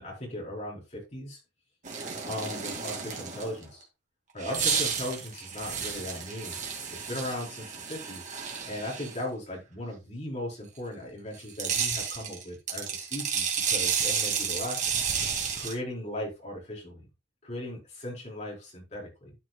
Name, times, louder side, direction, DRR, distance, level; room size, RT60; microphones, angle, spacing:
voice 1, 0.0-1.4 1.9-3.8 4.3-6.5 6.9-8.2 8.6-15.0 15.5-17.1 17.4-19.3, left 1 dB, 40° left, -2 dB, 4.6 m, -37 dB
sound 1, 1.8-3.6 4.4-9.2 11.3-15.7, right 6 dB, 45° right, 2.4 m, -31 dB
12.5 x 6.4 x 2.4 m, 0.25 s
head